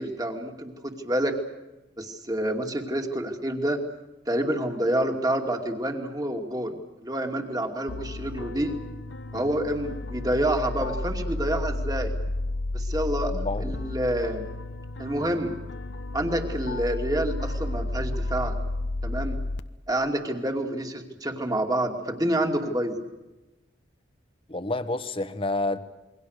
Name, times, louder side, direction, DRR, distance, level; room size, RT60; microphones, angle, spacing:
voice 1, 0.0-1.4 2.0-3.8 4.3-8.8 9.3-12.1 12.7-14.5 15.0-15.5 16.1-18.6 19.0-19.4 19.9-23.0, right 1 dB, 20° right, 4 dB, 2.6 m, -28 dB
sound 1, 7.9-19.6, left 2 dB, 70° left, 1.0 m, -32 dB
voice 2, 13.3-13.7 24.5-25.8, left 2 dB, 30° left, 10 dB, 1.4 m, -29 dB
28.5 x 22.5 x 6.7 m, 1.1 s
head